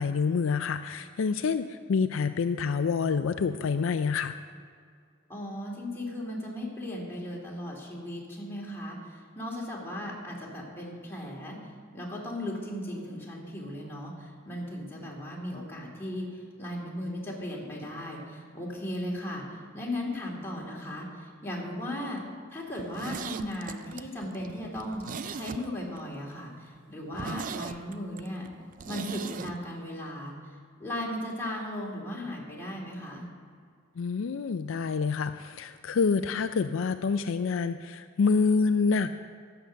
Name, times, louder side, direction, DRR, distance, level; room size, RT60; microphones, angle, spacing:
voice 1, 0.0-4.3 34.0-39.2, left 5 dB, 70° left, 10 dB, 0.4 m, -27 dB
voice 2, 5.3-22.2 22.5-25.0 25.3-28.5 28.9-30.5 30.8-33.2, left 1 dB, 10° left, -4 dB, 2.7 m, -37 dB
Zipper (clothing), 22.7-26.0 26.3-26.4 26.8-26.9 27.1-29.5 29.8-29.9, right 5 dB, 40° right, 0.4 m, -39 dB
11.5 x 7.9 x 6.3 m, 2.1 s
head